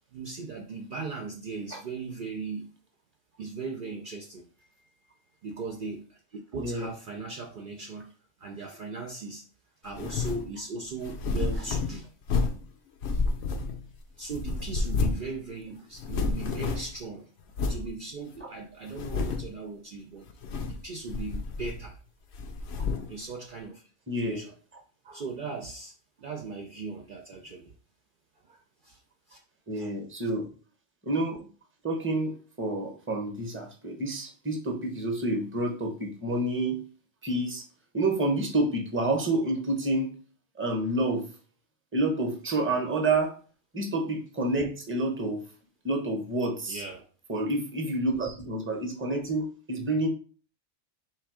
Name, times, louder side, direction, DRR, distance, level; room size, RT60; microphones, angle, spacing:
voice 1, 0.1-2.7 3.4-8.1 8.4-9.4 9.8-12.1 14.2-17.3 17.6-20.3 20.6-22.0 23.1-23.9 24.2-24.5 25.0-27.7 28.4-29.0 29.3-29.4 29.7-29.9 46.7-47.1, right 4 dB, 55° right, 2 dB, 0.6 m, -38 dB
voice 2, 6.6-6.9 24.1-24.4 29.7-30.5 31.0-31.5 31.8-36.8 37.2-37.6 37.9-40.1 40.6-41.3 41.9-43.3 43.7-45.4 45.8-46.8 47.3-50.1, right 2 dB, 10° right, 3 dB, 0.8 m, -28 dB
sound 1, 9.9-10.5 11.0-12.7 13.0-14.0 14.3-15.3 15.6-15.7 15.9-17.0 17.5-17.9 18.4-18.5 18.9-19.5 20.3-20.8 21.1-22.0 22.3-23.1, left 4 dB, 70° left, 0.9 m, -30 dB
3.4 x 3.2 x 4.7 m, 0.40 s
omnidirectional pair, 1.2 m